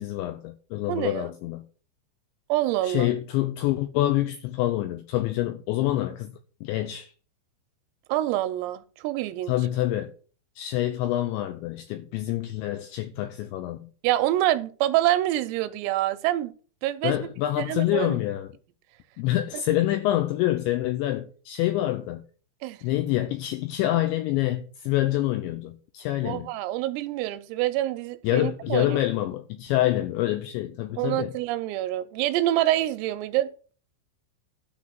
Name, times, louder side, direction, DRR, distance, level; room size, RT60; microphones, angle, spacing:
voice 1, 0.0-1.7 2.8-7.1 9.5-10.1 10.6-13.9 17.0-18.5 19.2-22.3 22.8-26.5 28.2-31.3, left 14 dB, 85° left, 2.6 m, -26 dB
voice 2, 0.9-1.2 2.5-3.1 8.1-9.6 14.0-16.5 16.8-17.3 17.6-18.2 19.5-19.6 22.6-22.8 26.2-29.0 31.0-33.5, right 14 dB, 85° right, 3.4 m, -26 dB
12.0 x 4.2 x 7.4 m
omnidirectional pair, 6.0 m